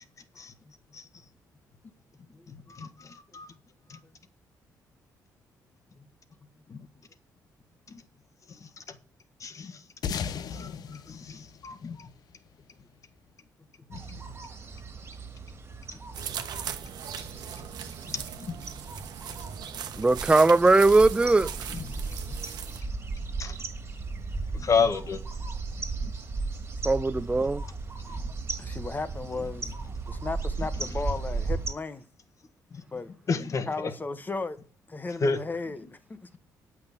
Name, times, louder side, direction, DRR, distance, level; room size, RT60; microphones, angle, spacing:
voice 1, 0.3-0.7 2.3-2.5 4.0-4.1 5.9-6.0 6.7-6.8 10.4-10.9 28.6-32.1 32.9-33.1 33.7-34.6 34.9-36.4, left 3 dB, 25° left, 1.3 m, -36 dB
voice 2, 2.7-3.5 3.9-4.0 6.7-6.8 7.9-8.0 9.4-9.8 10.5-12.1 13.9-14.2 18.1-18.5 21.7-22.2 23.4-23.5 24.5-25.2 26.0-26.1 32.7-32.8 33.3-33.7 35.2-35.4, left 5 dB, 45° left, 1.6 m, -31 dB
sound 1, 10.0-12.8, left 7 dB, 65° left, 0.9 m, -36 dB
sound 2, 13.9-31.7, right 3 dB, 35° right, 2.2 m, -36 dB
sound 3, 16.1-22.8, right 8 dB, 70° right, 1.1 m, -39 dB
voice 3, 20.0-21.5 26.8-27.6, right 3 dB, 15° right, 0.4 m, -20 dB
8.7 x 6.2 x 7.3 m
cardioid pair, 75°, 7 cm